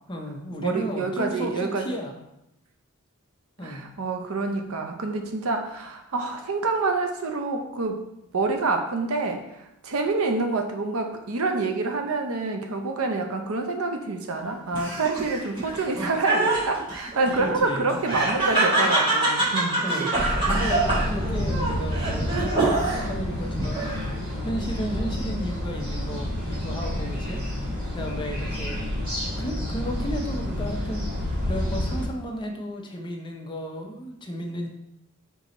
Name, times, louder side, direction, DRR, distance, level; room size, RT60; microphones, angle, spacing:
voice 1, 0.1-2.2 3.6-3.9 17.4-17.9 19.8-28.9 29.4-31.1 31.4-34.7, equal, 20° left, 2 dB, 0.6 m, -34 dB
voice 2, 0.6-1.9 3.6-8.0 8.3-19.8, right 3 dB, 85° right, 4 dB, 0.6 m, -27 dB
Laughter, 14.7-23.2 23.6-24.3, right 2 dB, 25° right, 1.2 m, -25 dB
sound 1, 20.1-32.1, left 1 dB, 45° right, 1.5 m, -29 dB
4.5 x 2.8 x 4.0 m, 0.85 s
head